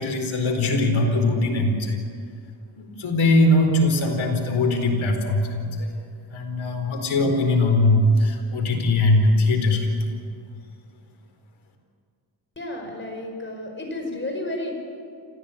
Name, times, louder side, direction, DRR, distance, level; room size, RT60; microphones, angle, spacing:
voice 1, 0.0-2.0 2.8-5.9 6.3-9.9, left 2 dB, 80° left, 3 dB, 4.4 m, -21 dB
voice 2, 12.6-14.7, left 1 dB, 25° left, 2 dB, 5.2 m, -32 dB
28.5 x 15.0 x 8.6 m, 2.2 s
wide cardioid pair, 115°, 47 cm